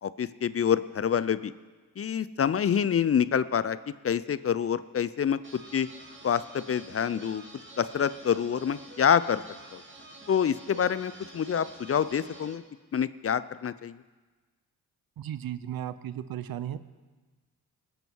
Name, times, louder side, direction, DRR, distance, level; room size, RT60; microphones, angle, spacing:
voice 1, 0.0-1.5 2.0-3.8 4.0-5.9 6.2-7.4 7.8-9.4 9.7-9.8 10.3-12.6 12.9-14.0, left 8 dB, 40° left, 16 dB, 0.5 m, -27 dB
sound 1, 5.4-12.5, right 2 dB, 30° right, 2.3 m, -48 dB
voice 2, 15.2-16.8, right 11 dB, 65° right, 14 dB, 0.8 m, -35 dB
20.0 x 8.1 x 4.7 m, 1.3 s
supercardioid pair, 55°, 38 cm